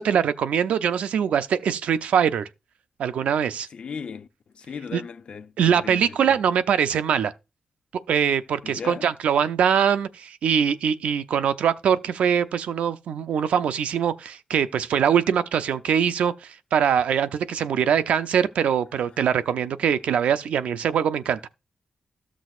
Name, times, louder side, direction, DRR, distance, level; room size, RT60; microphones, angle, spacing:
voice 1, 0.0-2.5 3.0-3.7 4.9-5.0 5.6-7.3 8.1-21.5, right 8 dB, 90° right, 0.5 m, -23 dB
voice 2, 3.7-4.3 4.5-6.4 8.6-9.1, left 6 dB, 55° left, 0.6 m, -37 dB
13.5 x 6.1 x 2.4 m
wide cardioid pair, 110°, 2 cm